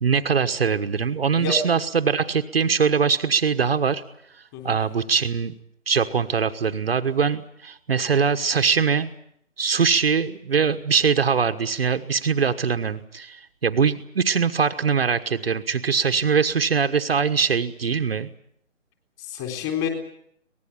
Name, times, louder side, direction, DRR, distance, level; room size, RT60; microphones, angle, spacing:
voice 1, 0.0-4.0 4.3-5.5 5.9-9.1 9.6-18.3, right 6 dB, 50° right, 7 dB, 1.3 m, -22 dB
voice 2, 19.2-19.9, left 8 dB, 15° left, 4 dB, 3.9 m, -29 dB
24.0 x 19.5 x 8.7 m, 0.70 s
figure-of-eight pair, 155°, 39 cm